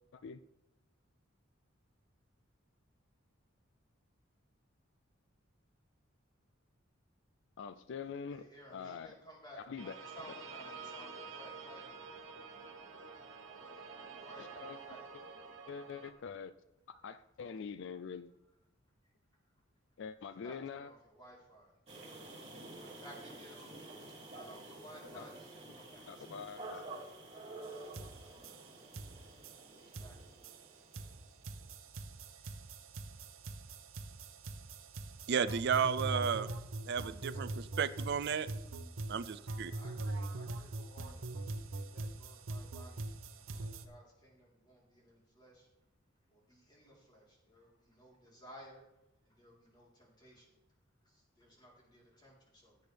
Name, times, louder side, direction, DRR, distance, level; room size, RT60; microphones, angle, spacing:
voice 1, 7.6-9.2 9.6-10.0 14.4-14.8 15.7-16.5 16.9-18.3 20.0-20.9 25.1-25.3 26.1-26.9, left 6 dB, 65° left, 12 dB, 0.4 m, -45 dB
voice 2, 8.3-12.0 14.2-15.0 20.2-21.7 22.5-26.5 29.7-31.0 32.3-32.6 33.1-33.2 39.7-45.7 46.3-48.8 49.3-50.5 51.0-52.8, equal, 20° left, -4 dB, 3.7 m, -57 dB
sound 1, 9.8-16.1, right 5 dB, 75° right, 1.6 m, -49 dB
sound 2, 21.9-31.6, right 2 dB, 30° right, 3.1 m, -50 dB
sound 3, 27.6-27.7 27.9-43.9, right 2 dB, 90° right, 0.8 m, -43 dB
voice 3, 35.3-36.5 36.8-38.5 39.1-39.7, right 7 dB, 55° right, 15 dB, 0.4 m, -33 dB
16.0 x 8.3 x 3.4 m, 0.95 s
head